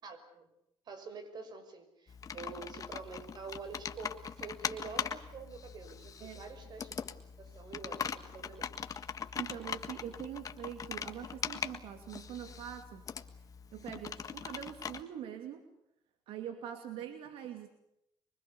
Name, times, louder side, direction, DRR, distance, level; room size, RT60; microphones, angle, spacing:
voice 1, 0.0-0.5 0.9-7.0 7.4-8.7, right 4 dB, 50° right, 9 dB, 5.9 m, -47 dB
Computer keyboard, 2.1-15.0, left 6 dB, 40° left, 1.6 m, -41 dB
voice 2, 9.3-13.1 13.7-15.6 16.3-17.7, right 10 dB, 85° right, 6 dB, 2.6 m, -43 dB
24.5 x 24.0 x 7.1 m, 0.81 s
cardioid pair, 115°, 9 cm